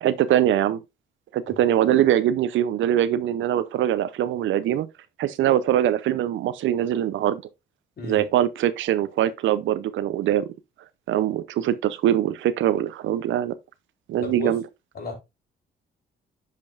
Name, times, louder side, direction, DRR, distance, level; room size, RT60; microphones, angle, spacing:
voice 1, 0.0-0.8 1.3-4.9 5.2-7.4 8.0-10.5 11.1-13.5 14.1-14.6, right 11 dB, 75° right, 0.6 m, -22 dB
voice 2, 14.2-14.5 14.9-15.1, left 2 dB, 50° left, 3.8 m, -33 dB
10.5 x 5.2 x 2.5 m
cardioid pair, 90°, 20 cm